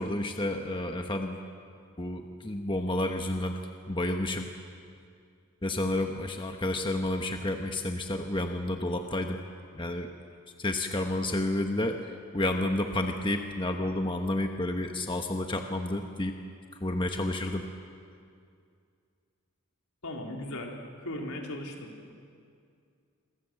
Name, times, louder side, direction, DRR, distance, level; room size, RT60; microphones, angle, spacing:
voice 1, 0.0-1.4 2.0-3.6 3.9-4.5 5.6-9.4 9.7-10.1 10.6-16.3 16.8-17.6, left 1 dB, 20° left, 4 dB, 1.2 m, -30 dB
voice 2, 20.0-21.9, left 1 dB, 80° left, 1 dB, 4.0 m, -37 dB
27.5 x 23.0 x 7.8 m, 2.3 s
head